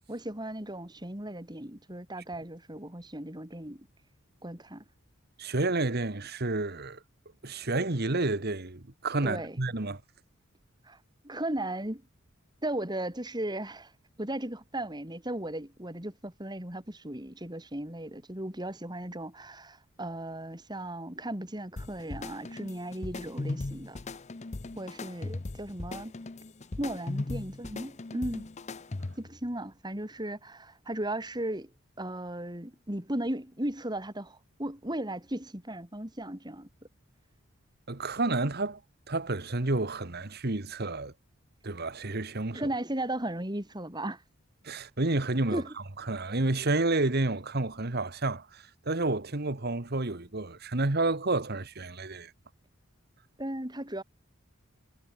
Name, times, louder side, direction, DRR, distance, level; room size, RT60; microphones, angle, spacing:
voice 1, 0.1-3.9 4.4-4.8 9.2-9.6 10.8-11.0 11.2-12.0 12.6-13.9 14.2-24.0 24.8-26.1 26.8-28.4 29.2-31.7 32.0-36.7 42.5-44.2 45.5-45.7 53.4-54.0, right 1 dB, 20° right, 3.3 m, -36 dB
voice 2, 5.4-7.0 7.4-10.0 37.9-38.8 39.1-41.1 41.6-42.6 44.6-45.6 46.1-52.3, right 2 dB, 50° right, 1.5 m, -30 dB
sound 1, 21.8-29.4, left 2 dB, 30° left, 0.6 m, -38 dB
head